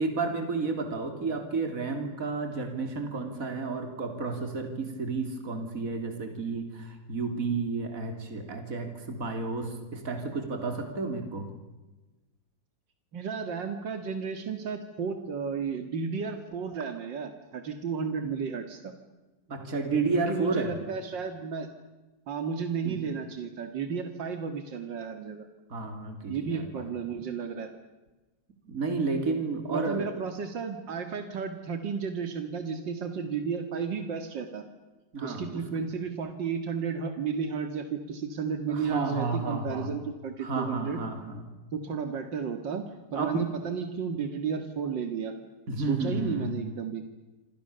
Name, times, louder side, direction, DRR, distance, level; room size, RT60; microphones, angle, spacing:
voice 1, 0.0-11.5 19.5-20.7 22.8-23.0 25.7-26.8 28.7-30.1 35.1-35.6 38.7-39.9 40.4-41.4 43.1-43.5 45.7-46.5, right 3 dB, 50° right, 5 dB, 3.6 m, -31 dB
voice 2, 13.1-18.9 20.1-21.7 22.3-25.5 26.3-27.7 29.7-34.7 35.2-41.0 41.7-42.8 43.1-45.4 45.8-47.0, right 6 dB, 85° right, 7 dB, 2.6 m, -33 dB
27.5 x 27.0 x 6.9 m, 1.1 s
omnidirectional pair, 1.9 m